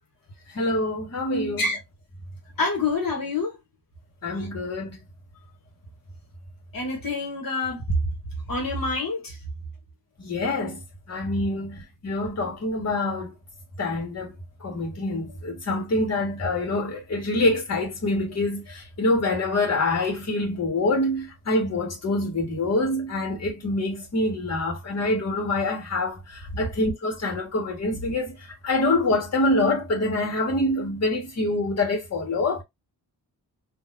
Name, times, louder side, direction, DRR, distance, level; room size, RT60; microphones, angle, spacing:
voice 1, 0.5-1.7 4.2-5.0 10.2-10.8 11.1-13.3 13.8-14.3 14.6-32.6, left 2 dB, 40° left, 1.5 m, -26 dB
voice 2, 2.6-3.5 4.4-4.5 6.7-7.8 8.5-9.4 11.5-11.7, left 3 dB, 60° left, 1.5 m, -27 dB
3.9 x 2.7 x 2.5 m
wide cardioid pair, 155°, 39 cm